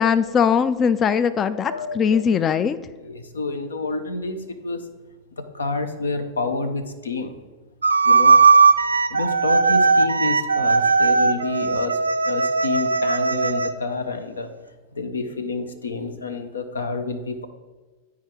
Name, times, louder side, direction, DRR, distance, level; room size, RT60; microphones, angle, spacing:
voice 1, 0.0-2.8, left 7 dB, 25° left, 14 dB, 0.3 m, -20 dB
voice 2, 1.7-2.2 3.0-4.8 5.4-7.4 8.0-8.4 9.1-12.0 12.2-14.5 14.9-17.5, left 3 dB, 70° left, 9 dB, 0.6 m, -29 dB
sound 1, 7.8-13.7, right 4 dB, 80° right, 0.4 m, -18 dB
9.6 x 4.8 x 4.6 m, 1.3 s
figure-of-eight pair, 90°, 0 cm